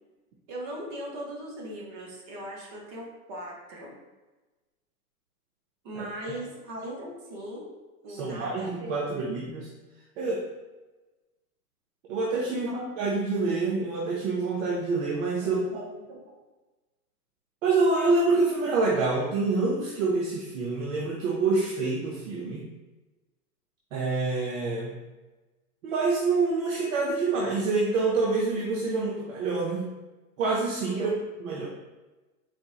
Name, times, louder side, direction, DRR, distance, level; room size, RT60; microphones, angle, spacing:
voice 1, 0.5-4.0 5.8-7.7 8.0-9.3 12.7-12.8 15.4-16.4 30.9-31.1, right 1 dB, 20° right, -2 dB, 0.3 m, -39 dB
voice 2, 8.1-9.7 10.2-10.5 12.1-15.8 17.6-22.7 23.9-25.0 25.8-29.9 30.4-31.1 31.4-31.7, right 3 dB, 55° right, -2 dB, 0.7 m, -27 dB
4.2 x 2.9 x 2.3 m, 1.2 s
hypercardioid pair, 130°, 48 cm